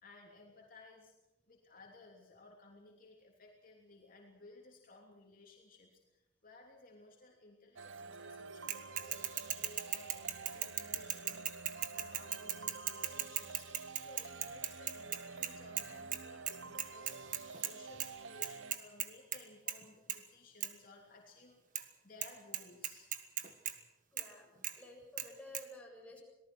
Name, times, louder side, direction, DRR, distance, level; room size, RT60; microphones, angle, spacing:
voice 1, 0.0-1.1 1.5-21.6 22.0-23.2, left 2 dB, 50° left, 0 dB, 3.2 m, -58 dB
sound 1, 7.8-18.8, right 4 dB, 85° right, 0.9 m, -49 dB
Bicycle / Mechanisms, 8.7-15.9 16.1-16.2 16.5-17.7 18.0-18.1 18.4-19.4 19.7-19.8 20.1-20.2 20.6-20.7 21.8-21.9 22.2-22.3 22.5-23.7 24.2-24.3 24.6-24.7 25.2-25.3 25.5-25.6, right 10 dB, 45° right, 1.6 m, -37 dB
voice 2, 24.1-24.5 24.7-26.2, left 1 dB, 5° left, -2 dB, 7.8 m, -52 dB
26.5 x 19.0 x 6.3 m, 0.95 s
head